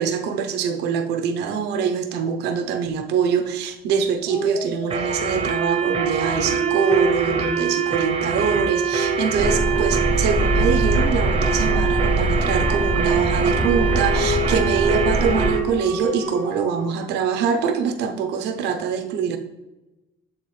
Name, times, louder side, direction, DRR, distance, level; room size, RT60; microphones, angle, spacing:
voice 1, 0.0-19.4, right 6 dB, 85° right, 7 dB, 0.7 m, -24 dB
Dog, 4.2-10.1 13.2-17.8, left 1 dB, 60° left, 1.9 m, -30 dB
sound 1, 4.9-15.7, right 6 dB, 35° right, 0.9 m, -24 dB
sound 2, 9.4-15.5, right 1 dB, 10° right, 0.5 m, -23 dB
8.8 x 3.7 x 3.2 m, 1.0 s
cardioid pair, 110°, 17 cm